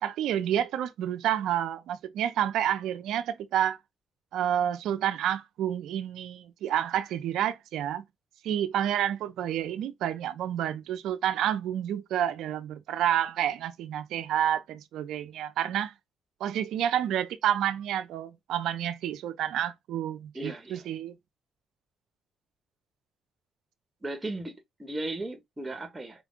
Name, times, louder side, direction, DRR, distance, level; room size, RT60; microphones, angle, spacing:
voice 1, 0.0-3.8 4.3-8.0 8.4-15.9 16.4-21.1, right 10 dB, 80° right, 0.7 m, -29 dB
voice 2, 20.3-20.9 24.0-26.3, right 2 dB, 15° right, 1.3 m, -36 dB
5.4 x 2.3 x 3.7 m
cardioid pair, 90°, 0 cm